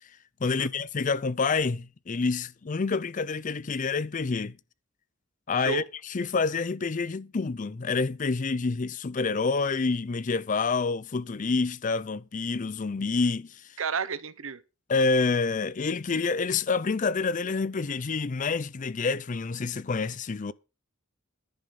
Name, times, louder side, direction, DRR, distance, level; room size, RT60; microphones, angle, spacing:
voice 1, 0.4-4.6 5.5-13.6 14.9-20.5, left 4 dB, 40° left, 0.5 m, -28 dB
voice 2, 13.8-14.6, right 5 dB, 80° right, 1.0 m, -32 dB
10.5 x 9.5 x 5.2 m
head